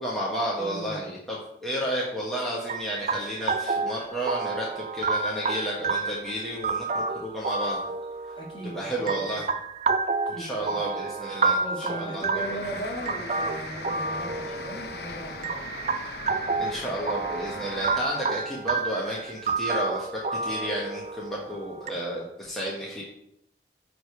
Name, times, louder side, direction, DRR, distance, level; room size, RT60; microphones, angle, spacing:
voice 1, 0.0-7.8 8.6-9.4 10.4-12.3 16.6-23.0, right 1 dB, ahead, -6 dB, 1.0 m, -32 dB
voice 2, 0.6-1.1 8.4-9.2 10.3-10.9 11.6-15.6, right 1 dB, 30° left, -1 dB, 1.4 m, -38 dB
sound 1, 2.7-21.9, right 4 dB, 40° right, 0.4 m, -30 dB
sound 2, 12.3-18.0, left 3 dB, 65° left, 0.6 m, -39 dB
8.8 x 3.4 x 4.7 m, 0.80 s
head